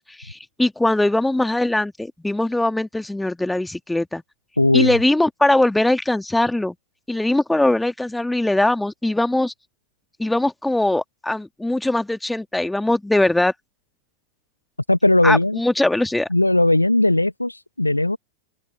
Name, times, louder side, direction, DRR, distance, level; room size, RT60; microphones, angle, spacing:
voice 1, 0.0-4.2 4.7-6.7 7.1-9.5 10.2-13.5 15.2-16.3, left 1 dB, 5° left, 2.1 m, -21 dB
voice 2, 4.6-5.0 14.9-15.6 16.3-18.2, left 1 dB, 85° left, 1.4 m, -18 dB
open air
figure-of-eight pair, 90°, 0 cm